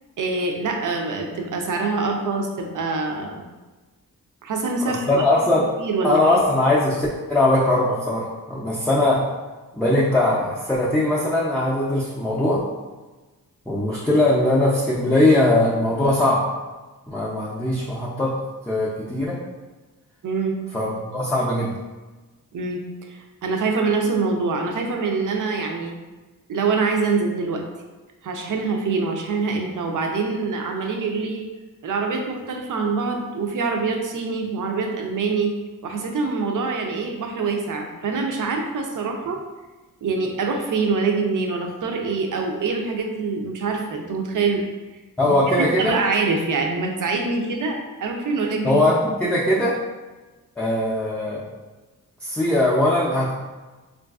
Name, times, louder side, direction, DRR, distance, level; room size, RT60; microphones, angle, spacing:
voice 1, 0.2-3.4 4.4-5.2 5.8-6.4 20.2-20.6 22.5-22.8 23.1-25.9 26.5-27.6 28.2-31.5 31.8-35.5 35.8-39.4 40.0-44.6 45.2-45.3 45.8-48.8, right 4 dB, 60° right, 2 dB, 0.5 m, -25 dB
voice 2, 4.9-5.7 6.0-9.3 9.8-12.6 13.7-16.5 17.1-18.4 18.7-19.4 20.7-21.8 45.2-46.0 48.6-49.8 50.6-51.5 52.2-53.3, left 1 dB, 5° left, -7 dB, 0.4 m, -20 dB
3.8 x 2.5 x 2.3 m, 1.2 s
wide cardioid pair, 115°, 36 cm